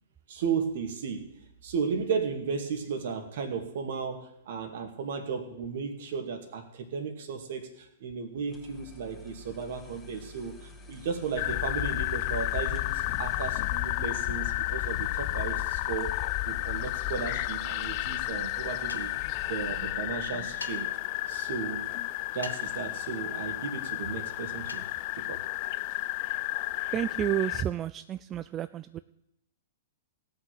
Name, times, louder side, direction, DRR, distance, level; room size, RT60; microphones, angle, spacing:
voice 1, 0.3-1.2 1.6-16.1 16.5-19.1 19.5-20.9 21.3-21.9 22.3-24.9 25.2-25.4, right 6 dB, 60° right, 7 dB, 2.2 m, -34 dB
sound 1, 8.4-20.0, left 2 dB, 10° left, 2.3 m, -50 dB
sound 2, 11.4-27.6, left 19 dB, 45° left, 0.4 m, -32 dB
sound 3, 18.9-19.2 20.6-20.8 22.4-22.8 24.7-24.9, left 3 dB, 90° left, 1.2 m, -41 dB
voice 2, 26.9-29.0, right 11 dB, 25° right, 14 dB, 0.4 m, -31 dB
17.0 x 5.8 x 7.8 m, 0.80 s
hypercardioid pair, 115°, 0 cm